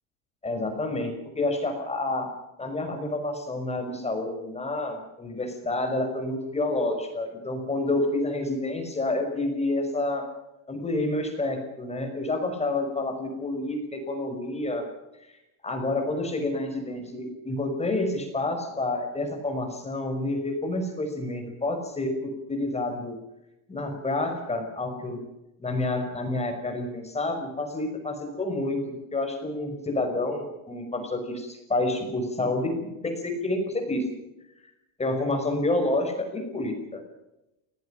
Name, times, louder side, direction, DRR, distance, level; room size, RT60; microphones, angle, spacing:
voice 1, 0.4-2.3 2.6-10.2 10.7-14.9 15.6-23.2 23.7-25.2 25.6-34.1 35.0-37.0, left 2 dB, 15° left, 5 dB, 5.6 m, -29 dB
28.0 x 18.5 x 5.9 m, 0.92 s
supercardioid pair, 120°, 42 cm